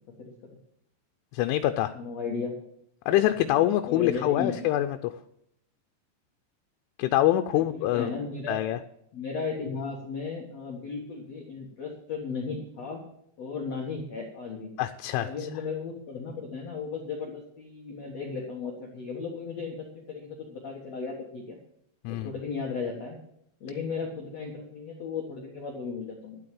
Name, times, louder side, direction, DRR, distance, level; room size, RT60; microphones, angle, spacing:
voice 1, 1.3-1.9 3.1-5.0 7.0-8.1 8.5-8.8 14.8-15.3 22.0-22.3, left 13 dB, 90° left, 7 dB, 3.1 m, -25 dB
voice 2, 1.9-2.6 3.3-3.5 3.9-4.6 7.5-8.6 9.1-13.0 13.4-14.7 15.1-21.6 22.1-23.2 23.6-26.4, left 5 dB, 70° left, -1 dB, 1.6 m, -35 dB
12.0 x 7.8 x 7.6 m, 0.74 s
omnidirectional pair, 5.4 m